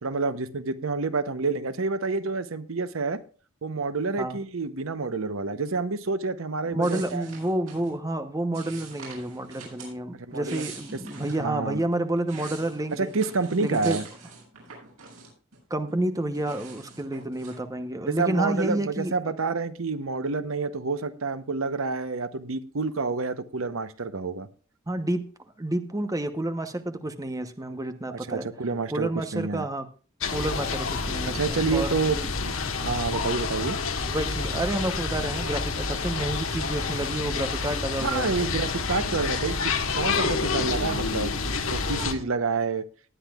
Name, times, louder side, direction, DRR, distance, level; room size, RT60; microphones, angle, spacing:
voice 1, 0.0-3.2 3.6-7.2 10.3-10.6 11.2-11.8 12.9-14.0 18.2-24.5 28.1-29.6 31.3-33.8 38.0-41.4 41.7-42.9, right 4 dB, 70° right, 13 dB, 0.8 m, -28 dB
voice 2, 6.7-13.1 13.6-14.0 15.7-19.1 24.9-25.3 25.6-28.5 28.9-29.9 30.3-32.3 34.1-38.5, right 1 dB, 15° right, 8 dB, 0.9 m, -29 dB
sound 1, 6.8-7.9 8.5-9.9 10.3-11.4 12.0-15.6 15.9-17.6, right 5 dB, 90° right, 7.6 m, -45 dB
sound 2, 30.2-42.1, left 4 dB, 70° left, 1.6 m, -28 dB
19.0 x 10.0 x 2.4 m, 0.37 s
head